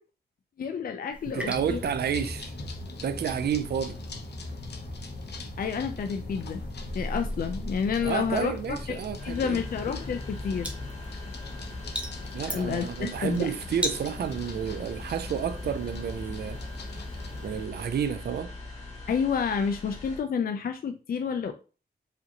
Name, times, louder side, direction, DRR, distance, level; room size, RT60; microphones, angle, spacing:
voice 1, 0.6-1.8 5.6-6.6 6.9-10.7 12.4-13.5 19.1-21.5, left 6 dB, 60° left, 0.4 m, -30 dB
sound 1, 1.1-17.7, equal, 5° right, 1.1 m, -41 dB
voice 2, 1.3-2.5 3.0-4.0 8.0-9.6 12.3-16.6 17.4-18.5, right 8 dB, 70° right, 0.4 m, -30 dB
sound 2, 1.5-17.6, left 2 dB, 75° left, 0.8 m, -40 dB
sound 3, 9.2-20.2, left 2 dB, 40° left, 1.8 m, -41 dB
4.9 x 2.6 x 2.9 m
cardioid pair, 75°, 17 cm